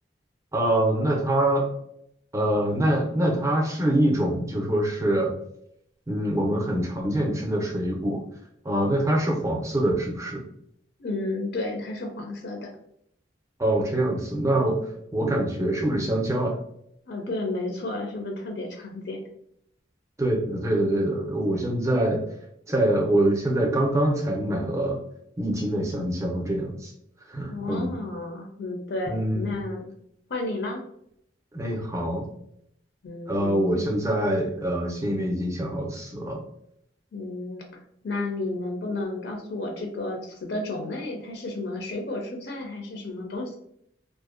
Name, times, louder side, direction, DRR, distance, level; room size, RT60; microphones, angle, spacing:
voice 1, 0.5-1.7 2.3-5.3 6.1-8.2 8.6-10.4 13.6-16.6 20.2-22.2 22.7-25.0 25.4-26.9 27.3-28.0 29.1-29.5 31.5-32.2 33.3-36.4, right 1 dB, 15° right, 0 dB, 0.4 m, -24 dB
voice 2, 11.0-12.7 17.1-19.2 27.5-29.8 30.3-30.8 33.0-33.9 37.1-37.6 38.0-43.6, left 2 dB, 65° left, 1 dB, 0.4 m, -32 dB
2.5 x 2.0 x 2.4 m, 0.72 s
head